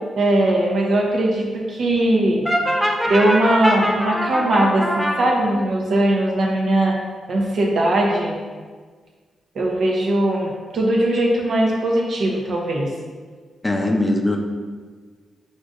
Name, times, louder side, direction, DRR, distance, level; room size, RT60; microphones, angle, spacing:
voice 1, 0.2-2.4 3.0-7.0 7.3-8.4 9.5-12.9, right 1 dB, 70° right, -2 dB, 0.9 m, -19 dB
Brass instrument, 2.4-5.2, equal, ahead, 0.9 m, -22 dB
voice 2, 13.6-14.4, left 1 dB, 20° left, 2 dB, 0.5 m, -20 dB
5.1 x 3.7 x 2.6 m, 1.5 s
cardioid pair, 65°, 0 cm